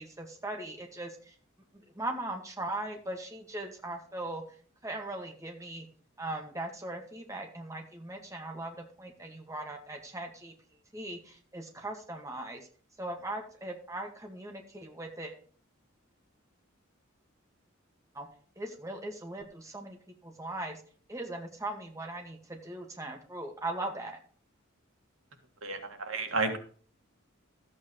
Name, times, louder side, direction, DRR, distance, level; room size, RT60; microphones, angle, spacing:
voice 1, 0.0-1.4 1.7-4.4 4.8-5.9 6.2-10.5 10.9-12.7 13.0-15.4 18.1-18.3 18.6-20.0 20.2-20.8 21.1-24.2, right 2 dB, 15° right, 2 dB, 1.9 m, -39 dB
voice 2, 25.6-26.6, right 3 dB, 85° right, 5 dB, 2.3 m, -31 dB
13.5 x 8.5 x 3.3 m, 0.43 s
head